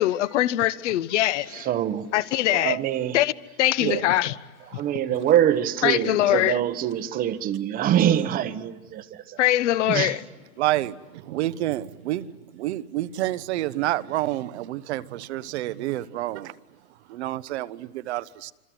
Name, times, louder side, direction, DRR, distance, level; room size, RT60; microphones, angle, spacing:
voice 1, 0.0-1.6 2.1-2.8 3.1-3.3 3.6-4.3 5.8-6.6 9.4-10.2, left 14 dB, 50° left, 1.0 m, -22 dB
voice 2, 1.5-2.1 2.5-3.2 3.8-4.1 4.7-9.4 9.9-10.2, right 11 dB, 20° right, 0.9 m, -24 dB
voice 3, 10.6-16.6 17.1-18.5, right 15 dB, 45° right, 0.9 m, -29 dB
26.5 x 25.5 x 7.7 m
hypercardioid pair, 145°, 45 cm